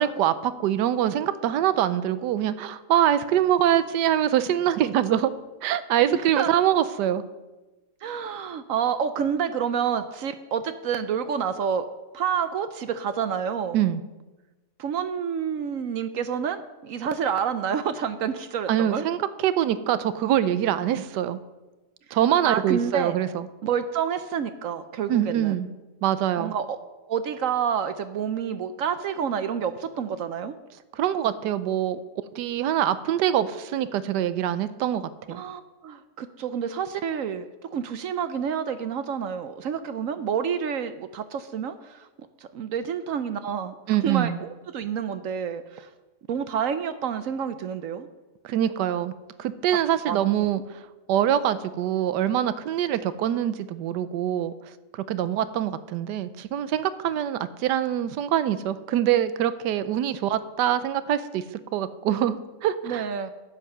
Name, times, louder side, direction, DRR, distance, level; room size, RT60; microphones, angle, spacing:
voice 1, 0.0-5.3 5.6-7.2 13.7-14.1 18.7-21.4 22.1-23.5 25.1-25.7 26.0-26.5 30.9-32.0 32.3-35.4 43.9-44.4 48.4-49.1 49.4-50.8 51.1-54.5 54.9-61.4 61.7-63.0, right 11 dB, 85° right, 14 dB, 1.3 m, -24 dB
voice 2, 6.1-6.5 8.0-11.9 12.1-13.8 14.8-19.1 22.1-22.2 22.4-23.2 23.6-25.6 26.4-26.8 27.1-30.5 35.3-42.1 42.5-45.9 46.3-48.1 50.1-50.3 62.8-63.3, right 7 dB, 65° right, 11 dB, 0.8 m, -28 dB
9.9 x 8.4 x 6.7 m, 1.1 s
omnidirectional pair, 1.8 m